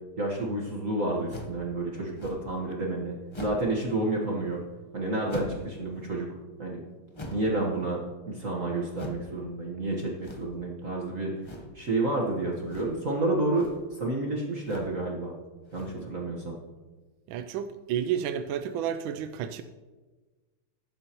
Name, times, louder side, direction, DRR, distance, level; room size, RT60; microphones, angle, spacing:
voice 1, 0.2-4.6 4.9-6.3 6.6-6.8 7.3-8.0 8.3-11.3 11.7-15.3 15.7-16.6, right 2 dB, 40° right, -2 dB, 1.5 m, -30 dB
sound 1, 1.3-1.6 2.2-2.6 3.3-3.8 5.3-5.7 7.1-7.6 8.9-9.3 10.2-10.6 11.4-11.8 12.6-13.1 13.4-13.9 14.6-15.0 15.6-16.1, left 1 dB, 35° left, 0.4 m, -41 dB
voice 2, 17.3-19.6, right 9 dB, 75° right, 9 dB, 1.3 m, -31 dB
15.0 x 11.0 x 3.0 m, 1.2 s
omnidirectional pair, 2.3 m